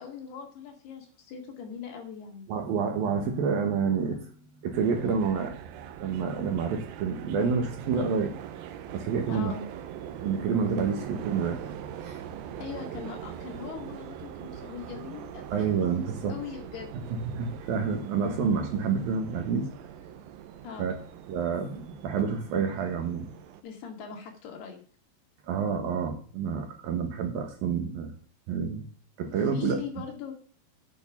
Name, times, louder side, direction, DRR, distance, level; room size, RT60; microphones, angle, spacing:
voice 1, 0.0-2.5 9.3-9.6 12.6-15.8 16.3-16.9 20.6-20.9 23.6-24.8 29.2-30.3, left 7 dB, 65° left, 2 dB, 4.0 m, -40 dB
voice 2, 2.5-4.3 4.6-5.5 6.0-8.3 8.9-9.5 10.1-12.2 15.5-16.3 17.3-19.7 20.8-20.9 21.3-23.3 25.5-28.1 28.5-28.8 29.2-29.8, right 6 dB, 65° right, 4 dB, 2.8 m, -28 dB
sound 1, 4.7-23.6, right 10 dB, 80° right, 2.1 m, -42 dB
8.9 x 6.5 x 7.2 m, 0.44 s
omnidirectional pair, 5.2 m